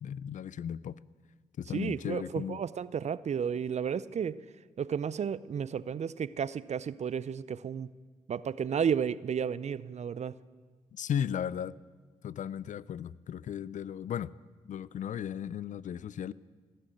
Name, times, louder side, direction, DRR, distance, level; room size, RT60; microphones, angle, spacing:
voice 1, 0.0-1.0 1.6-2.6 10.9-11.8 12.2-14.3 14.6-16.3, left 9 dB, 60° left, 21 dB, 0.4 m, -35 dB
voice 2, 1.7-4.4 4.8-7.9 8.3-10.4, right 7 dB, 50° right, 18 dB, 0.5 m, -32 dB
17.0 x 7.6 x 9.1 m, 1.5 s
supercardioid pair, 50°, 15 cm